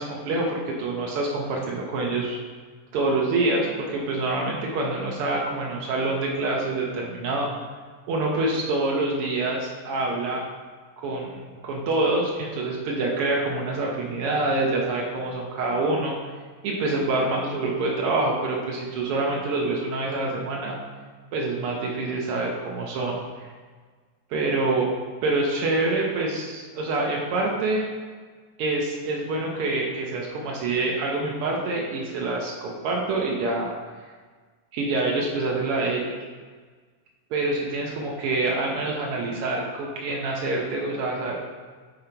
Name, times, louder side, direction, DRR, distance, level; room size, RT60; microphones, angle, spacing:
voice 1, 0.0-2.4 2.9-7.5 8.1-10.4 11.0-16.1 16.6-20.8 21.3-23.2 24.3-24.9 25.2-27.9 28.6-33.7 34.7-36.2 37.3-41.4, right 2 dB, 85° right, -2 dB, 1.2 m, -26 dB
7.2 x 3.9 x 4.5 m, 1.5 s
omnidirectional pair, 3.7 m